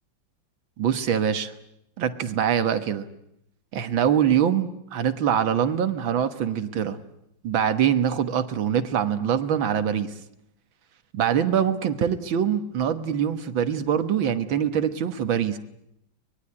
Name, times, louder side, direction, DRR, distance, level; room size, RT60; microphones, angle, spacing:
voice 1, 0.8-1.5 2.0-3.1 3.7-7.0 7.4-10.1 11.1-15.6, right 8 dB, 80° right, 10 dB, 2.1 m, -24 dB
24.0 x 20.5 x 9.8 m, 0.80 s
omnidirectional pair, 2.1 m